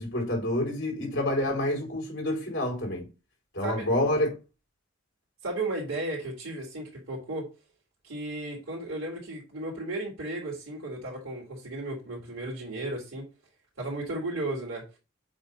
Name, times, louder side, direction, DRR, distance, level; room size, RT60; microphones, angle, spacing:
voice 1, 0.0-3.1 3.5-4.3, left 1 dB, 60° left, 4.3 m, -28 dB
voice 2, 5.4-7.5 8.0-13.3 13.8-14.8, right 2 dB, 85° right, 3.0 m, -34 dB
7.9 x 2.8 x 5.5 m
head